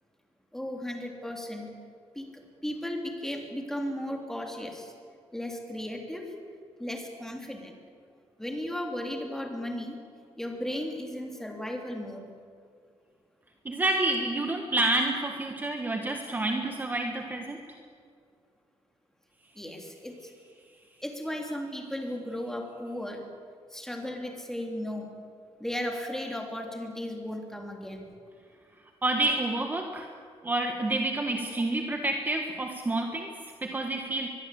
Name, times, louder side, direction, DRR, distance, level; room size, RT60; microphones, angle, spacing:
voice 1, 0.5-1.7 2.1-4.9 5.3-6.3 6.8-7.7 8.4-10.0 10.4-12.3 19.5-20.3 21.0-23.3 23.7-25.1 25.6-28.1, left 1 dB, 5° left, 2 dB, 3.2 m, -35 dB
voice 2, 13.6-17.6 29.0-30.1 30.4-34.3, right 2 dB, 15° right, 4 dB, 1.5 m, -29 dB
23.5 x 22.0 x 8.5 m, 2.2 s
cardioid pair, 155°, 11 cm